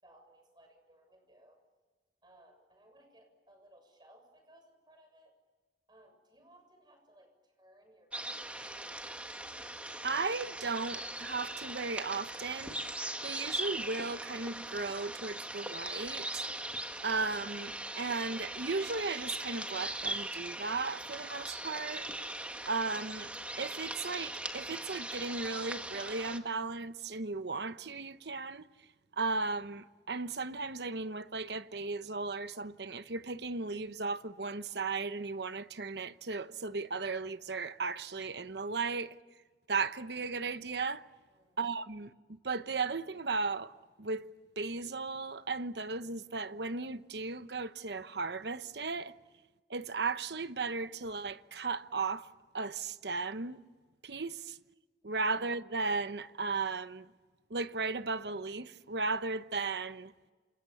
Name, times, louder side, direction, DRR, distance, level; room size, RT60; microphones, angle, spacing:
voice 1, 0.0-1.6 2.2-5.3 5.9-8.6 41.3-41.6 55.0-55.1, right 1 dB, 25° right, 7.3 m, -62 dB
sound 1, 8.1-26.4, right 1 dB, 10° right, 1.8 m, -40 dB
voice 2, 10.0-12.8 13.2-16.4 17.0-22.1 22.6-28.7 29.2-39.2 39.7-41.1 41.6-42.1 42.4-43.7 44.0-44.3 44.6-49.1 49.7-52.3 52.5-53.6 54.0-54.6 55.0-57.1 57.5-60.1, right 4 dB, 70° right, 1.0 m, -36 dB
29.0 x 27.5 x 7.2 m
head